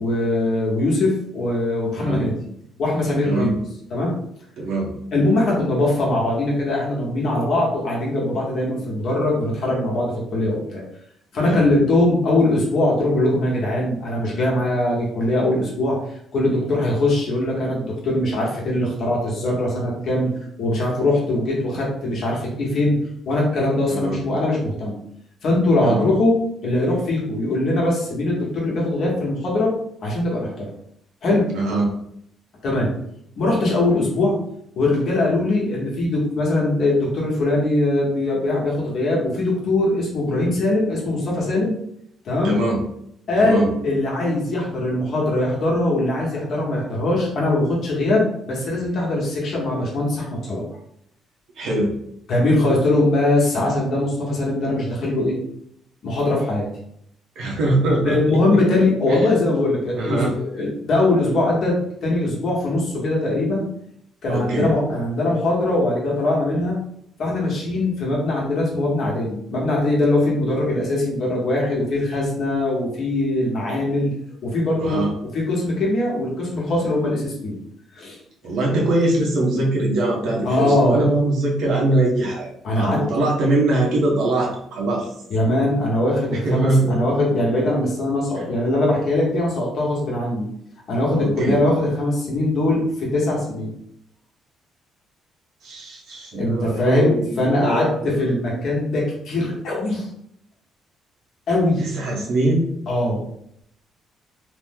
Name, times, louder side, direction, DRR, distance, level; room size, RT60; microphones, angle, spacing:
voice 1, 0.0-2.3 2.8-3.6 3.9-4.1 5.1-10.8 11.3-16.0 16.3-20.3 20.6-23.0 23.3-25.0 25.4-26.4 26.6-29.7 30.0-30.6 31.2-31.4 32.6-32.9 33.4-34.4 34.8-41.7 42.2-42.6 43.3-50.6 52.3-55.4 56.0-56.7 58.0-61.7 62.0-63.6 64.2-66.8 67.2-74.1 74.4-75.0 75.3-77.5 77.9-78.2 80.4-81.1 82.6-83.0 85.3-90.5 90.9-93.7 96.3-100.1 101.5-101.8 102.9-103.2, left 2 dB, 50° left, -4 dB, 0.9 m, -21 dB
voice 2, 2.0-2.3 3.2-3.5 4.6-4.9 11.4-11.7 23.9-24.2 25.8-26.1 31.5-31.9 42.4-42.8 43.4-43.7 51.6-51.9 57.4-58.6 59.1-59.2 59.9-60.3 64.3-64.7 74.8-75.1 78.4-85.1 86.3-87.0 88.4-88.5 91.2-91.6 95.6-98.3 101.8-102.7, right 2 dB, 70° right, -2 dB, 0.8 m, -22 dB
3.0 x 2.0 x 3.5 m, 0.72 s
cardioid pair, 150°, 0 cm